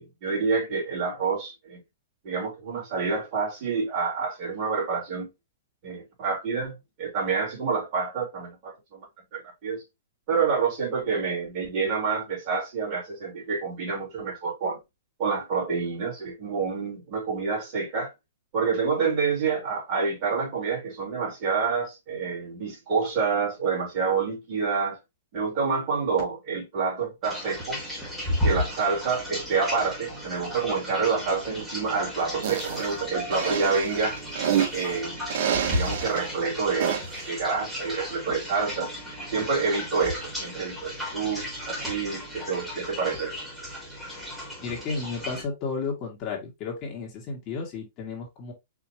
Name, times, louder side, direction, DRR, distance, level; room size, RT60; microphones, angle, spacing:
voice 1, 0.0-1.8 2.2-5.3 5.8-9.1 9.3-9.8 10.3-14.8 15.2-18.1 18.5-25.0 25.3-27.8 28.3-34.2 34.7-35.2 35.6-37.0 37.3-38.9 39.3-43.3, right 5 dB, 40° right, 2.9 m, -28 dB
sound 1, 27.2-45.4, left 1 dB, 5° right, 2.0 m, -34 dB
sound 2, 32.4-32.8 33.3-34.9 35.3-36.2 36.8-37.2, right 9 dB, 60° right, 0.8 m, -27 dB
voice 2, 44.6-48.5, left 4 dB, 30° left, 1.7 m, -33 dB
4.9 x 3.0 x 2.8 m
hypercardioid pair, 155°, 0 cm